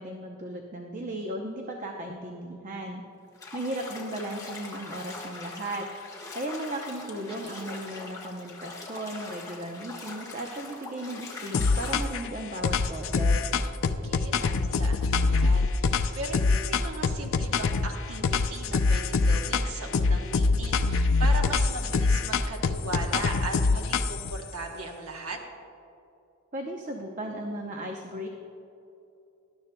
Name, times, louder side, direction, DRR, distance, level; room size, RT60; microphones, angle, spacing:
voice 1, 0.0-3.0 3.5-5.9 6.3-13.4 26.5-28.3, right 1 dB, 35° right, 2 dB, 0.7 m, -36 dB
Bathtub (filling or washing), 3.3-12.1, left 3 dB, 15° left, 1.5 m, -42 dB
voice 2, 7.1-7.6 13.9-25.4, right 2 dB, 80° right, 2 dB, 1.0 m, -38 dB
sound 1, 11.5-12.3 12.6-17.9 18.2-19.7 19.9-24.4, left 4 dB, 65° left, 0.5 m, -24 dB
19.0 x 12.0 x 2.2 m, 2.8 s
head